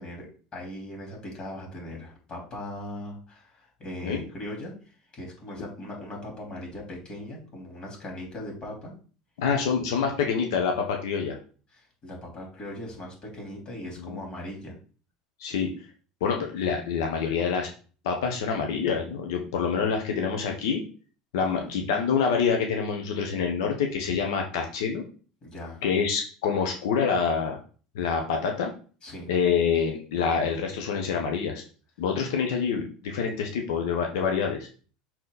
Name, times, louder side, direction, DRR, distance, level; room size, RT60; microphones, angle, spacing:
voice 1, 0.0-4.8 5.1-8.9 11.7-14.8 21.6-21.7 25.4-25.8 29.0-29.3, left 1 dB, 40° left, 0 dB, 3.8 m, -39 dB
voice 2, 9.4-11.4 14.0-14.2 15.4-15.7 16.2-17.7 18.0-20.8 21.3-25.0 25.8-27.6 27.9-28.7 29.3-31.6 32.0-34.7, left 6 dB, 80° left, 3 dB, 1.2 m, -26 dB
6.3 x 4.4 x 4.1 m, 0.39 s
hypercardioid pair, 90°, 2 cm